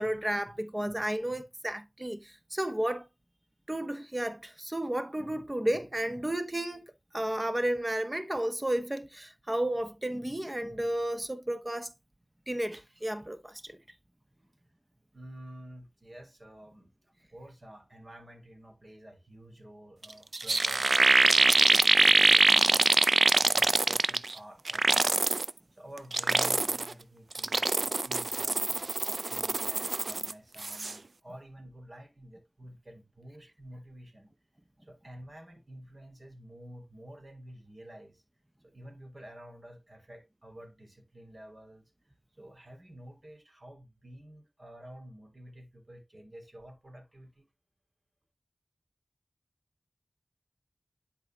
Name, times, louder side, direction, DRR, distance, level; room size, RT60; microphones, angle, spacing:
voice 1, 0.0-3.1 3.7-6.8 7.1-11.9 12.5-13.8, right 1 dB, 20° right, 0.9 m, -32 dB
voice 2, 15.1-25.4 25.8-34.3 34.8-38.2 38.6-41.9 42.4-47.5, equal, 45° right, 3.4 m, -50 dB
sound 1, 20.0-20.1 20.3-24.3 24.7-25.5 26.0-26.9 27.3-30.3 30.6-30.9, right 3 dB, 65° right, 0.4 m, -24 dB
11.0 x 4.8 x 2.3 m
wide cardioid pair, 55°, 0 cm